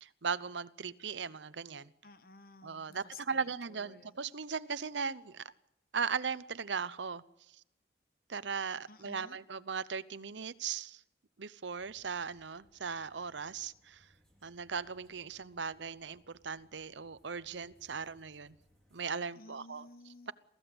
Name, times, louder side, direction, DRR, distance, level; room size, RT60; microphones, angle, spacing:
voice 1, 0.0-1.9 2.6-5.5 5.9-7.2 7.5-7.6 8.3-11.0 11.4-14.1 14.4-18.6 18.9-19.9, right 5 dB, 80° right, 17 dB, 0.8 m, -38 dB
voice 2, 2.0-4.2 8.9-9.4 19.3-20.3, left 3 dB, 50° left, 12 dB, 1.3 m, -54 dB
sound 1, 11.8-19.1, equal, 5° left, 3.7 m, -69 dB
23.0 x 15.5 x 7.9 m, 0.85 s
head